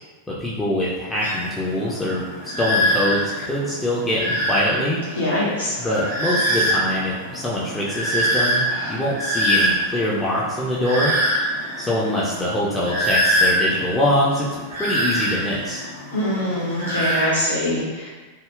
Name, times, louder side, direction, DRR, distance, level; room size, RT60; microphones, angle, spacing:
voice 1, 0.4-5.0 5.8-11.1 11.8-14.5 14.7-15.8, left 1 dB, 15° left, -6 dB, 0.4 m, -24 dB
sound 1, 1.2-17.2, equal, 80° right, 1.0 m, -25 dB
voice 2, 5.1-5.7 16.1-18.1, left 1 dB, 75° left, -9 dB, 0.8 m, -23 dB
3.5 x 2.0 x 2.3 m, 1.3 s
figure-of-eight pair, 90°, 0 cm